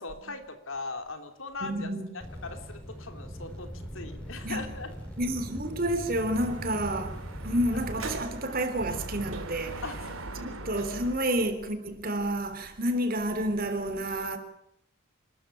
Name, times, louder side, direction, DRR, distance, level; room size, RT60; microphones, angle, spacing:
voice 1, 0.0-1.9 2.1-4.9 9.8-10.5 11.2-11.3, left 3 dB, 70° left, 3.1 m, -40 dB
voice 2, 1.6-2.2 4.4-4.7 5.2-9.8 10.4-14.4, right 1 dB, 45° right, 3.4 m, -30 dB
sound 1, 2.2-8.2, equal, 5° left, 6.6 m, -41 dB
Dog / Motorcycle, 6.3-11.3, right 2 dB, 85° right, 2.7 m, -40 dB
28.0 x 13.5 x 10.0 m
head